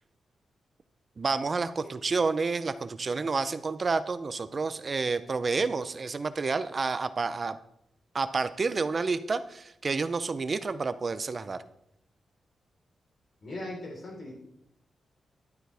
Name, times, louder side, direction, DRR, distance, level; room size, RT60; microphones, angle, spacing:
voice 1, 1.2-7.6 8.1-11.6, right 4 dB, 30° right, 13 dB, 0.5 m, -29 dB
voice 2, 13.4-14.3, left 1 dB, 45° left, -2 dB, 3.9 m, -39 dB
11.5 x 9.1 x 3.4 m, 0.80 s
wide cardioid pair, 165°, 0 cm